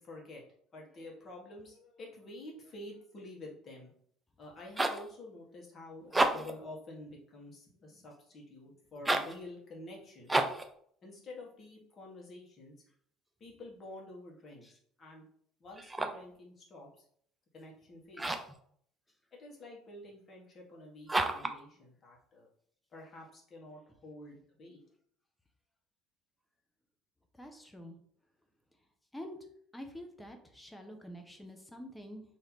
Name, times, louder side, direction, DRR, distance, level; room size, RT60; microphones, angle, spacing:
voice 1, 0.1-0.4 0.7-3.9 4.4-10.3 11.0-12.7 13.4-15.2 15.6-17.0 17.5-18.3 19.3-22.5 22.9-24.8, left 2 dB, 40° left, -2 dB, 1.6 m, -49 dB
sound 1, 4.4-5.1 6.0-6.6 9.0-9.4 10.3-10.7 15.7-16.3 18.1-18.6 21.1-21.6, right 2 dB, 15° right, 0.5 m, -31 dB
voice 2, 27.4-28.0 29.1-29.4 29.7-32.2, equal, 10° left, 4 dB, 0.9 m, -47 dB
3.2 x 2.9 x 4.1 m, 0.63 s
supercardioid pair, 80°, 0 cm